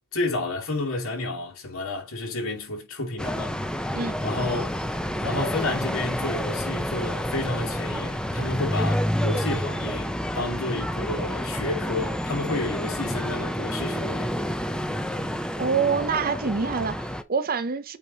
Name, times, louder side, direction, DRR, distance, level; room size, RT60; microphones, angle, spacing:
voice 1, 0.1-3.6 4.2-4.8 5.2-14.3, left 2 dB, 70° left, 2.4 m, -31 dB
sound 1, 3.2-17.2, equal, 5° left, 0.6 m, -29 dB
voice 2, 15.6-18.0, right 5 dB, 45° right, 0.7 m, -26 dB
8.5 x 3.1 x 4.0 m
head